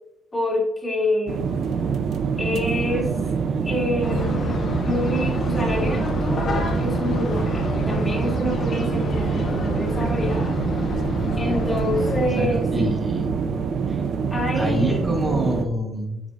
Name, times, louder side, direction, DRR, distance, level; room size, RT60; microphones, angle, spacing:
voice 1, 0.3-1.5 2.4-3.1 3.6-10.6 11.4-12.9 14.3-15.0, left 1 dB, 20° left, -3 dB, 2.7 m, -27 dB
sound 1, 1.3-15.7, right 6 dB, 65° right, 0.7 m, -25 dB
sound 2, 4.0-12.3, left 3 dB, 55° left, 1.3 m, -29 dB
voice 2, 12.3-13.3 13.9-14.0 14.5-16.2, equal, 30° right, -1 dB, 2.2 m, -26 dB
8.9 x 6.3 x 2.6 m, 0.95 s
cardioid pair, 90°, 0 cm